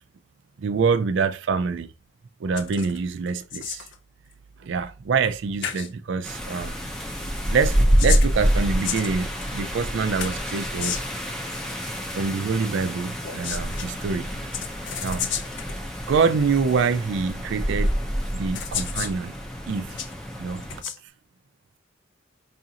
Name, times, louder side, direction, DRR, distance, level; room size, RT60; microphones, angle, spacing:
voice 1, 0.6-1.9 2.4-3.9 4.6-7.1 7.5-11.0 12.1-14.5 15.0-15.3 16.1-18.0 18.3-19.3 19.7-20.0 20.4-20.6, right 5 dB, 65° right, 0.4 m, -25 dB
sound 1, 2.6-3.0 3.3-4.0 5.2-5.4 5.6-5.9 7.7-9.6 10.2-11.2 13.2-13.9 14.5-15.8 16.7-16.8 17.9-18.0 18.5-19.2 19.7-20.1 20.6-21.0, left 9 dB, 60° left, 0.5 m, -32 dB
sound 2, 6.2-20.8, equal, 5° left, 0.6 m, -27 dB
4.9 x 2.5 x 2.8 m
head